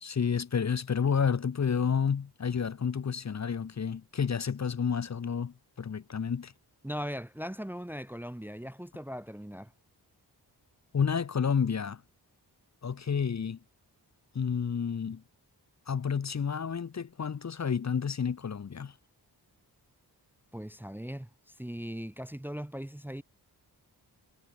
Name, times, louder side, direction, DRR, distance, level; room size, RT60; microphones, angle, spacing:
voice 1, 0.0-6.5 10.9-12.0 12.8-13.6 14.3-15.2 15.9-18.9, left 6 dB, 45° left, 0.9 m, -30 dB
voice 2, 6.8-9.7 20.5-23.2, equal, 5° right, 0.8 m, -39 dB
wide cardioid pair, 160°, 40 cm